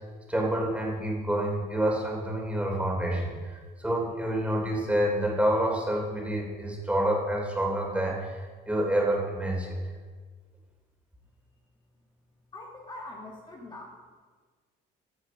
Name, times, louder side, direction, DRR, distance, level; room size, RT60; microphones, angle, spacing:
voice 1, 0.3-9.8, right 1 dB, 5° right, -1 dB, 3.3 m, -28 dB
voice 2, 12.5-14.1, left 2 dB, 25° left, -1 dB, 1.6 m, -43 dB
14.0 x 7.4 x 5.4 m, 1.5 s
cardioid pair, 110°, 17 cm